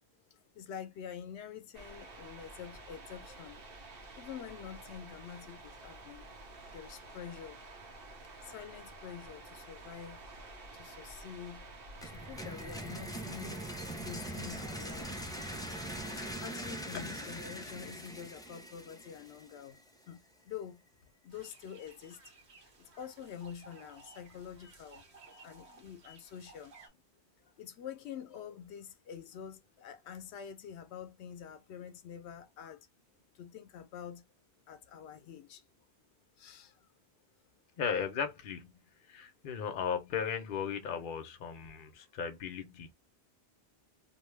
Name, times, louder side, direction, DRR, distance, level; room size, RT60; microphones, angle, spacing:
voice 1, 0.5-3.6 4.2-6.3 6.7-7.6 8.4-10.2 10.7-11.7 12.0-13.7 14.0-15.3 16.2-19.8 20.1-20.2 20.4-20.8 21.2-22.2 22.8-25.0 25.4-26.7 27.6-32.9 33.3-34.2 34.7-35.6 36.4-36.8, left 8 dB, 90° left, 0.9 m, -47 dB
sound 1, 1.7-16.3, right 2 dB, 65° right, 0.9 m, -50 dB
sound 2, 12.0-19.8, right 1 dB, 5° left, 0.4 m, -42 dB
sound 3, 21.3-26.9, right 3 dB, 85° right, 1.2 m, -57 dB
voice 2, 37.8-38.7 39.0-42.9, left 7 dB, 55° left, 0.7 m, -36 dB
2.6 x 2.3 x 3.1 m
omnidirectional pair, 1.1 m